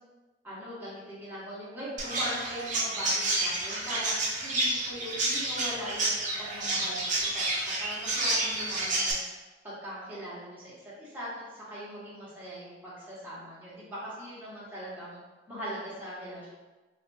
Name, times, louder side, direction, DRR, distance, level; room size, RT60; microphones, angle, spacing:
voice 1, 0.4-4.1 4.4-7.4 7.8-9.2 9.6-11.3 11.7-15.2 15.5-16.5, equal, 10° right, -10 dB, 1.2 m, -40 dB
Chirp tweet, 2.0-9.1, right 2 dB, 45° right, 0.7 m, -29 dB
3.4 x 2.6 x 2.7 m, 1.2 s
head